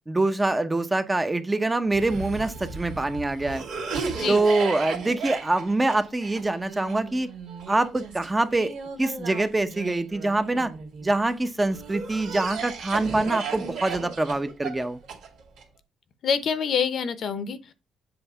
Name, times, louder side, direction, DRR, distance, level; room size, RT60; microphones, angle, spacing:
voice 1, 0.1-3.6 4.3-7.3 7.7-10.7 11.0-15.0, right 2 dB, 15° right, 0.7 m, -25 dB
Cough, 1.9-11.1 11.7-15.6, right 5 dB, 90° right, 2.0 m, -35 dB
voice 2, 16.2-17.7, left 6 dB, 60° left, 0.8 m, -26 dB
7.7 x 2.6 x 5.5 m
cardioid pair, 90°, 0 cm